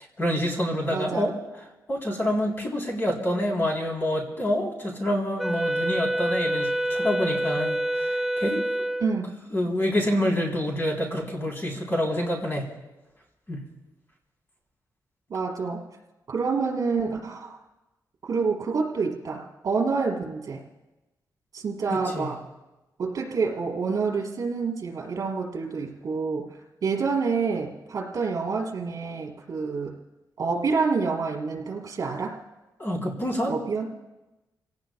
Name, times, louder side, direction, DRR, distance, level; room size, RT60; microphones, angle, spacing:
voice 1, 0.2-1.3 1.9-8.6 9.5-12.7 13.5-13.6 21.9-22.3 32.8-33.6, left 1 dB, 30° left, -1 dB, 3.8 m, -27 dB
voice 2, 0.9-1.3 9.0-9.4 15.3-15.8 16.3-17.6 18.3-20.6 21.5-22.4 23.0-29.9 30.4-32.4 33.5-33.8, right 4 dB, 60° right, -1 dB, 3.9 m, -28 dB
Wind instrument woodwind instrument, 5.4-9.2, right 1 dB, 5° right, 0.4 m, -27 dB
29.0 x 18.0 x 2.4 m, 1.0 s
wide cardioid pair, 130°, 7 cm